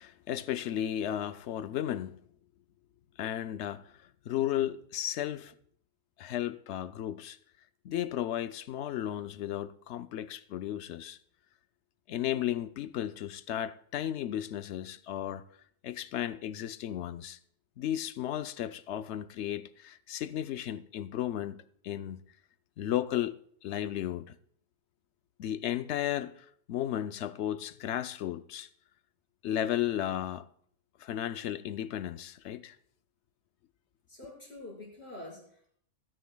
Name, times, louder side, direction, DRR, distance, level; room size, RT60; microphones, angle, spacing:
voice 1, 0.0-2.2 3.2-3.9 4.3-5.5 6.2-7.4 7.8-11.2 12.1-15.4 15.8-17.4 17.8-22.2 22.8-23.3 23.6-24.3 25.4-28.7 29.4-30.5 31.0-32.8, left 11 dB, 65° left, 0.8 m, -34 dB
voice 2, 34.1-35.8, left 1 dB, 50° left, 5.5 m, -46 dB
19.5 x 10.0 x 2.2 m
omnidirectional pair, 1.4 m